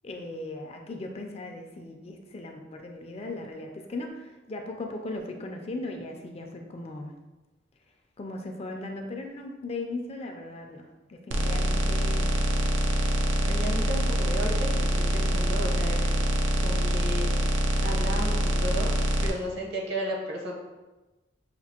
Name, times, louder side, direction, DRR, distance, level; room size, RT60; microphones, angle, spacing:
voice 1, 0.0-7.1 8.2-10.8 11.1-12.5, left 2 dB, 30° left, 3 dB, 0.4 m, -38 dB
sound 1, 11.3-19.3, equal, 90° right, 0.5 m, -25 dB
voice 2, 13.4-16.1 16.6-17.5 17.8-18.9 19.2-20.5, equal, 60° right, -2 dB, 1.0 m, -34 dB
5.8 x 2.5 x 2.8 m, 1.1 s
head